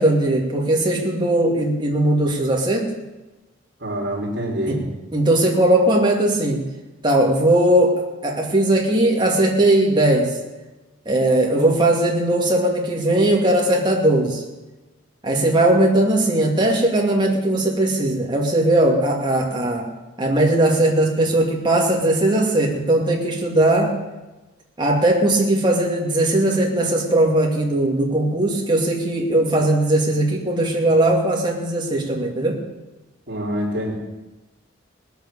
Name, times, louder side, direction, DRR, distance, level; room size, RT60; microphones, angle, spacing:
voice 1, 0.0-2.9 4.7-4.8 5.1-6.6 7.0-10.3 11.1-14.4 15.2-19.9 20.2-24.0 24.8-32.6, right 1 dB, 20° right, -1 dB, 2.3 m, -19 dB
voice 2, 3.8-4.8 33.3-33.9, equal, 50° right, -3 dB, 3.3 m, -26 dB
19.5 x 8.2 x 6.9 m, 1.1 s
head